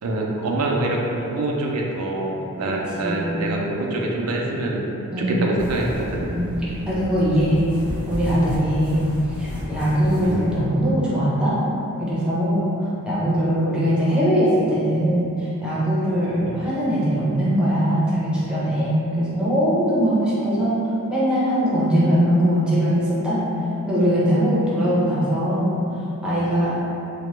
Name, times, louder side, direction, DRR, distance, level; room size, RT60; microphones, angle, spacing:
voice 1, 0.0-4.9 5.2-6.3 10.2-10.5, right 2 dB, 85° right, -1 dB, 0.4 m, -25 dB
voice 2, 3.0-3.4 5.1-5.5 6.3-6.6 6.9-7.7 8.1-9.1 9.4-11.6 12.0-20.8 21.1-23.4 23.8-25.8 26.2-26.8, equal, 5° right, -10 dB, 0.6 m, -21 dB
sound 1, 5.6-10.6, equal, 55° left, 0.9 m, -32 dB
2.9 x 2.1 x 3.1 m, 2.9 s
head